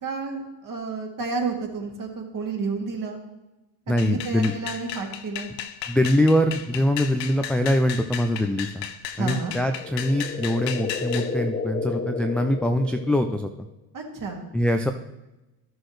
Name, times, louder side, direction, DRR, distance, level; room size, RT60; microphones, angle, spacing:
voice 1, 0.0-3.2 4.0-5.5 9.1-9.5 13.9-14.4, right 4 dB, 40° right, 1 dB, 2.3 m, -31 dB
voice 2, 3.9-4.5 5.9-8.8 9.2-13.5 14.5-14.9, left 1 dB, 5° left, 4 dB, 0.3 m, -23 dB
sound 1, 4.0-11.3, left 10 dB, 90° left, 0.7 m, -35 dB
sound 2, 9.5-13.7, left 4 dB, 20° left, 1.3 m, -32 dB
12.5 x 6.2 x 3.2 m, 0.99 s
hypercardioid pair, 75°, 48 cm